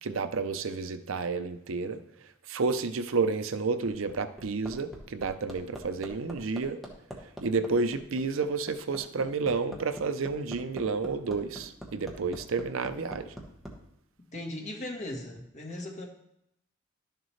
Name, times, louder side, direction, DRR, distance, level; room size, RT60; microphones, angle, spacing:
voice 1, 0.0-2.0 2.5-6.8 7.4-13.3, right 4 dB, 80° right, 10 dB, 0.6 m, -30 dB
Hammer, 3.8-13.7 15.1-15.2, equal, ahead, 1.2 m, -43 dB
voice 2, 14.3-16.1, left 1 dB, 35° left, 0 dB, 1.5 m, -38 dB
12.0 x 6.6 x 3.2 m, 0.78 s
head